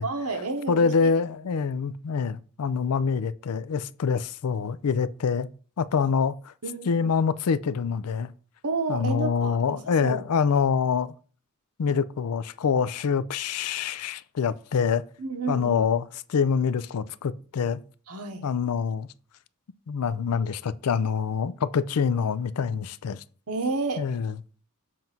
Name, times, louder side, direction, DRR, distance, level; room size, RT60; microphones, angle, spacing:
voice 1, 0.0-1.1 1.5-1.7 6.6-7.1 8.6-10.2 15.2-15.9 18.1-18.4 23.5-24.1, right 3 dB, 85° right, 1.1 m, -31 dB
voice 2, 0.7-5.5 5.8-6.5 6.9-8.3 8.9-11.1 11.8-15.0 15.5-17.8 18.4-19.1 19.9-23.2 24.0-24.3, left 6 dB, 80° left, 0.4 m, -25 dB
7.5 x 2.6 x 5.9 m
head